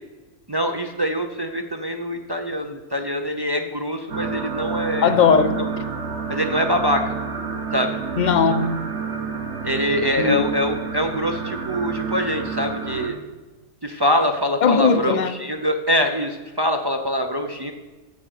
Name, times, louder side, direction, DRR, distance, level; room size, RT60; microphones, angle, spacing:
voice 1, 0.5-5.1 6.3-7.1 7.7-8.0 9.6-13.2 13.8-17.7, equal, 35° right, 4 dB, 0.4 m, -24 dB
sound 1, 4.1-13.1, right 5 dB, 50° right, 1.5 m, -29 dB
voice 2, 5.0-5.6 8.2-8.8 10.2-10.4 14.6-15.3, left 6 dB, 45° left, 10 dB, 0.6 m, -18 dB
9.4 x 7.9 x 6.6 m, 1.3 s
omnidirectional pair, 1.5 m